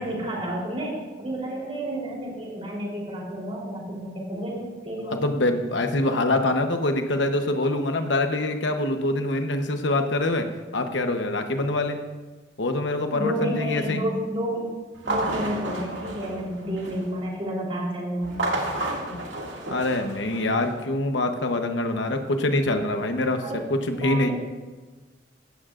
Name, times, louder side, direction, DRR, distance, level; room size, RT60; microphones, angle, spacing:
voice 1, 0.0-5.2 13.1-14.6 15.0-18.4 23.4-23.6 23.9-24.3, right 1 dB, 30° right, -3 dB, 3.6 m, -30 dB
voice 2, 5.1-10.5 10.7-12.0 12.6-14.0 19.1-19.2 19.7-23.4 23.7-24.3, left 2 dB, 80° left, 6 dB, 1.0 m, -25 dB
sound 1, 14.9-17.2 18.2-20.7, right 1 dB, 90° right, 2.2 m, -31 dB
16.5 x 13.0 x 2.5 m, 1.3 s
head